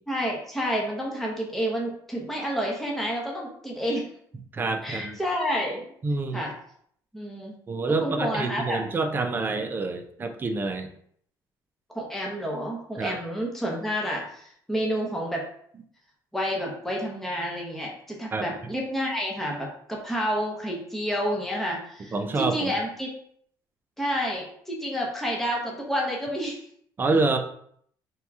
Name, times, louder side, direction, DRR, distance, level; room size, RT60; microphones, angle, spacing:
voice 1, 0.1-4.0 4.8-5.8 6.3-6.5 7.1-7.5 8.0-8.8 11.9-15.4 16.3-23.1 24.0-26.6, equal, 5° left, -2 dB, 0.9 m, -29 dB
voice 2, 4.5-5.2 6.0-6.4 7.7-10.9 13.0-13.1 18.3-18.5 22.1-22.7 27.0-27.4, right 3 dB, 25° right, 5 dB, 0.6 m, -27 dB
3.5 x 2.9 x 4.7 m, 0.65 s
cardioid pair, 130°, 8 cm